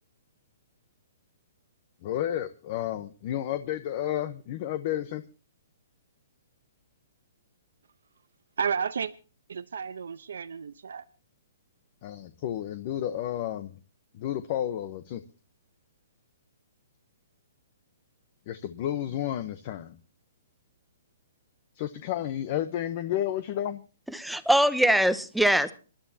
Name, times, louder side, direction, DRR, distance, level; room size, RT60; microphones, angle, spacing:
voice 1, 2.0-5.2 12.0-13.8 14.1-15.2 18.5-20.0 21.8-23.8, left 11 dB, 30° left, 0.8 m, -31 dB
voice 2, 8.6-9.1 9.5-11.0, right 6 dB, 85° right, 0.8 m, -32 dB
voice 3, 24.1-25.7, right 1 dB, ahead, 0.7 m, -22 dB
27.0 x 11.5 x 2.8 m
hypercardioid pair, 170°, 0 cm